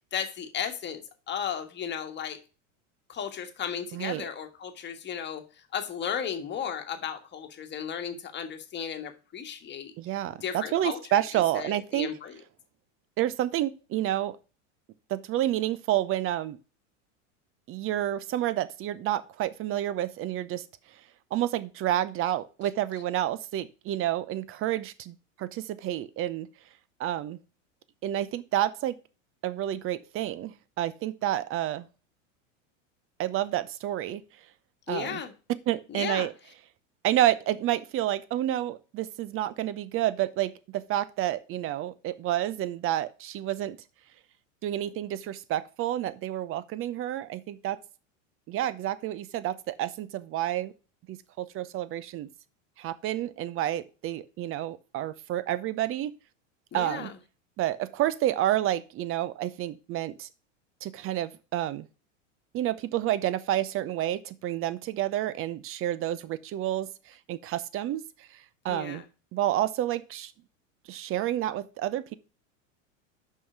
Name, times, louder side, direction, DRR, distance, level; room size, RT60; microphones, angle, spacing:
voice 1, 0.1-1.0 1.3-2.4 3.1-5.4 5.7-9.9 10.4-11.2 11.5-12.4 34.9-35.3 35.9-36.3 56.7-57.1 68.7-69.0, left 8 dB, 30° left, 1.5 m, -35 dB
voice 2, 3.9-4.2 10.0-12.1 13.2-14.4 15.1-16.6 17.7-20.6 21.3-26.5 27.0-27.4 28.0-29.0 29.4-31.9 33.2-34.2 34.9-35.2 35.7-36.3 37.0-43.8 44.6-47.8 48.5-50.7 51.1-52.3 52.8-56.1 56.7-57.1 57.6-60.3 60.8-61.9 62.5-68.4 68.6-69.0 69.3-70.3 70.9-72.1, right 13 dB, 35° right, 0.7 m, -29 dB
6.1 x 5.7 x 6.0 m
supercardioid pair, 115°, 38 cm